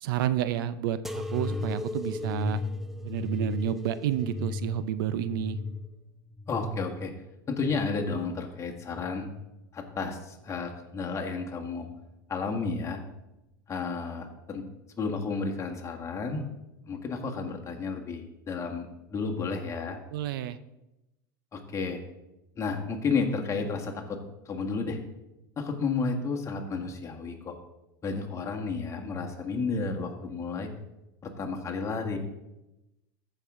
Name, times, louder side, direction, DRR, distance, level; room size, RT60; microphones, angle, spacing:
voice 1, 0.0-2.6 3.0-5.6 20.1-20.6, right 11 dB, 70° right, 15 dB, 0.5 m, -30 dB
sound 1, 1.0-8.3 8.8-9.6 10.3-10.8 11.8-11.9, left 3 dB, 5° right, 0.6 m, -36 dB
voice 2, 6.5-7.1 7.5-9.3 9.7-11.9 12.3-13.0 13.7-14.6 15.0-16.5 16.9-20.0 21.5-22.0 22.6-24.2 24.4-25.0 25.6-27.5 28.0-30.7 31.2-32.2, left 4 dB, 25° left, 2 dB, 1.6 m, -32 dB
14.5 x 5.4 x 3.6 m, 0.95 s
hypercardioid pair, 100°, 12 cm